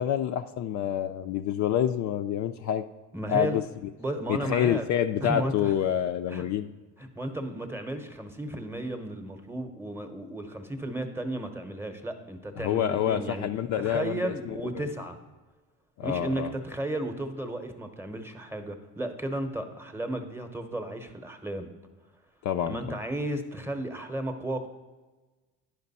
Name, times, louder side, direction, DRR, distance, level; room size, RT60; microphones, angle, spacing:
voice 1, 0.0-2.8 3.3-3.6 4.3-6.7 12.6-14.5 16.0-16.5 22.4-23.0, left 10 dB, 50° left, 7 dB, 0.4 m, -27 dB
voice 2, 3.1-3.6 4.0-4.9 5.2-5.7 6.3-6.4 7.0-13.5 13.8-15.2 16.0-21.7 22.7-24.7, right 1 dB, 5° right, 6 dB, 0.8 m, -34 dB
10.5 x 5.2 x 4.1 m, 1.3 s
supercardioid pair, 100°, 37 cm